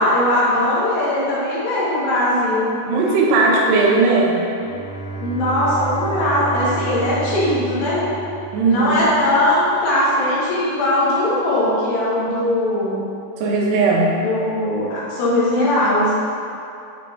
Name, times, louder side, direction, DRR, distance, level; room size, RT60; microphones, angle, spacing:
voice 1, 0.0-2.7 5.2-8.0 8.7-13.1 14.2-16.1, left 1 dB, 85° left, -8 dB, 3.8 m, -19 dB
voice 2, 2.9-4.4 8.5-8.9 13.4-14.2, right 3 dB, 85° right, -2 dB, 3.0 m, -17 dB
Bowed string instrument, 4.5-9.2, right 3 dB, 60° left, 2.8 m, -30 dB
8.8 x 5.6 x 2.7 m, 2.6 s
omnidirectional pair, 4.7 m